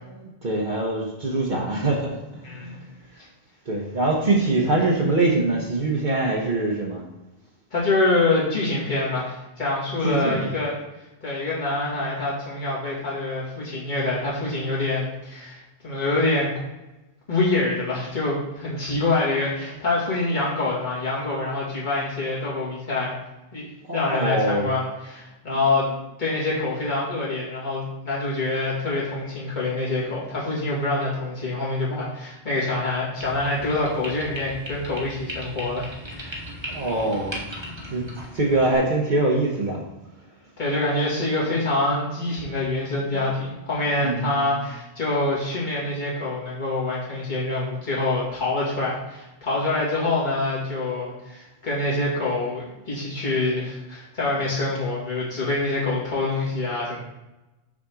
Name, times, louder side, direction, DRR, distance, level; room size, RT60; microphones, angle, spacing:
voice 1, 0.2-2.9 3.7-7.0 10.0-10.5 23.9-24.7 36.7-37.4 37.9-38.1 38.3-39.8 43.1-43.2 44.0-44.5, right 2 dB, 50° right, -2 dB, 1.2 m, -23 dB
voice 2, 2.4-2.8 7.7-10.7 11.2-16.5 17.3-23.1 23.5-23.7 23.9-25.9 26.2-36.4 40.6-57.0, left 2 dB, 50° left, -7 dB, 2.5 m, -25 dB
sound 1, 33.2-38.8, equal, 25° right, 1.3 m, -37 dB
6.1 x 4.2 x 6.2 m, 1.0 s
omnidirectional pair, 1.0 m